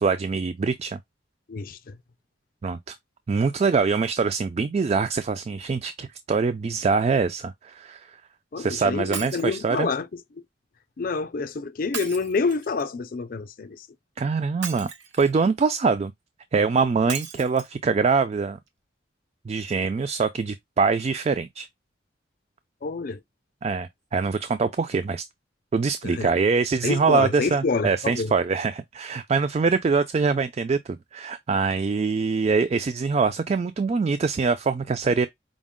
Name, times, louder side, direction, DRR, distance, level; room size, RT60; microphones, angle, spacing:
voice 1, 0.0-1.0 2.6-3.0 3.3-8.1 8.6-9.9 14.2-14.9 15.2-16.1 16.5-18.6 19.5-21.7 23.6-25.2 25.7-35.3, right 4 dB, 35° right, 0.3 m, -24 dB
voice 2, 1.5-2.0 8.5-10.4 11.0-13.9 22.8-23.2 26.0-26.3 26.8-28.3, left 4 dB, 50° left, 0.5 m, -28 dB
Shatter, 9.1-9.6 11.9-12.8 14.6-15.4 17.1-17.7 18.3-18.4 18.7-18.8, right 6 dB, 90° right, 1.0 m, -36 dB
5.1 x 2.0 x 3.6 m
head